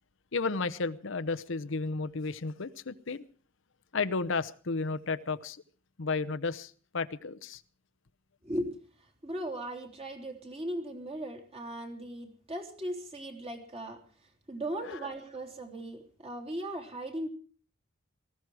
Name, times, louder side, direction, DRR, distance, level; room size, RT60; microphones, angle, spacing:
voice 1, 0.3-3.2 3.9-5.6 6.0-7.6 14.8-15.1, left 4 dB, 65° left, 0.8 m, -33 dB
voice 2, 8.4-8.8 9.2-14.0 14.5-17.3, right 1 dB, 30° right, 3.3 m, -38 dB
18.5 x 15.5 x 4.8 m
head